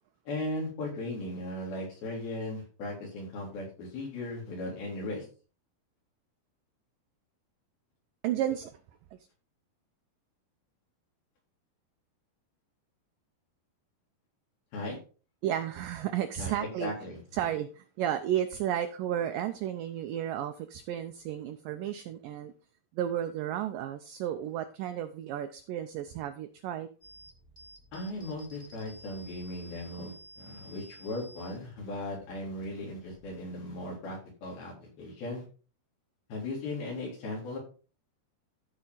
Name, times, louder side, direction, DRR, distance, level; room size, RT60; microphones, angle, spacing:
voice 1, 0.3-5.3 14.7-15.0 16.4-16.5 16.8-17.2 27.9-35.4 36.3-37.6, left 2 dB, 70° left, -2 dB, 5.5 m, -37 dB
voice 2, 8.2-8.8 15.4-16.9 17.3-22.5 22.9-26.9, right 11 dB, 80° right, 8 dB, 1.9 m, -33 dB
sound 1, 27.0-33.4, right 1 dB, 15° right, 1.5 m, -53 dB
13.5 x 5.3 x 3.9 m, 0.36 s
omnidirectional pair, 4.6 m